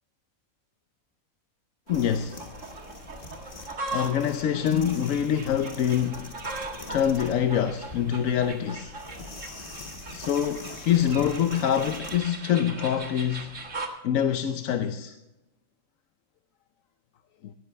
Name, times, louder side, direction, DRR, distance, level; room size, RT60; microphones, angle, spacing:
voice 1, 1.9-2.4 3.9-6.3 6.9-8.9 10.1-13.5 14.0-15.2 17.4-17.5, left 9 dB, 70° left, 1.1 m, -25 dB
sound 1, 1.9-12.2, left 2 dB, 35° left, 1.8 m, -44 dB
sound 2, 1.9-13.9, right 3 dB, 60° right, 2.1 m, -39 dB
17.5 x 13.5 x 3.3 m
omnidirectional pair, 1.5 m